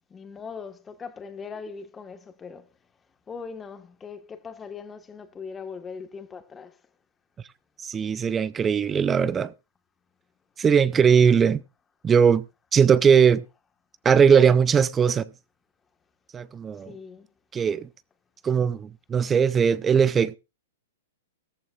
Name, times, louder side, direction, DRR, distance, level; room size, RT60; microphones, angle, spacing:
voice 1, 0.1-2.7 3.3-6.8 16.9-17.3, left 5 dB, 15° left, 1.5 m, -40 dB
voice 2, 7.8-9.5 10.6-11.6 12.0-12.4 12.7-13.4 14.0-15.3 16.3-16.9 17.5-17.9 18.4-20.4, right 7 dB, 20° right, 0.5 m, -19 dB
15.0 x 14.0 x 2.4 m
hypercardioid pair, 130°, 0 cm